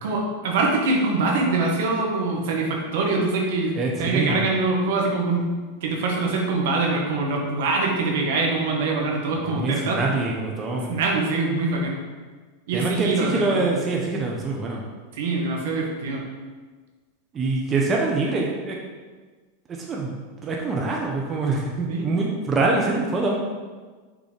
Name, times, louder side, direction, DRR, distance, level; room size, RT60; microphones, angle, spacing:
voice 1, 0.0-5.6 5.8-10.0 10.9-12.0 12.7-13.7 15.1-16.2 21.9-22.1, right 3 dB, 70° right, 0 dB, 1.5 m, -24 dB
voice 2, 3.8-4.4 9.5-11.0 12.7-14.9 17.3-18.7 19.7-23.4, right 3 dB, 25° right, -1 dB, 1.0 m, -25 dB
6.5 x 4.0 x 5.1 m, 1.4 s
hypercardioid pair, 105°, 0 cm